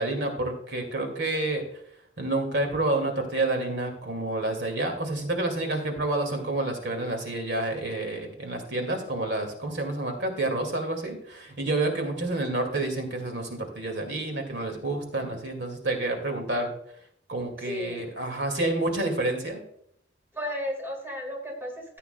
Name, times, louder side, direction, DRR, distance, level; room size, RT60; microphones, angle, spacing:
voice 1, 0.0-1.6 2.2-16.7 17.3-19.6, right 2 dB, 60° right, 4 dB, 2.2 m, -29 dB
voice 2, 17.6-18.1 20.3-22.0, left 1 dB, 15° right, 0 dB, 2.1 m, -34 dB
14.5 x 9.0 x 2.3 m, 0.69 s
head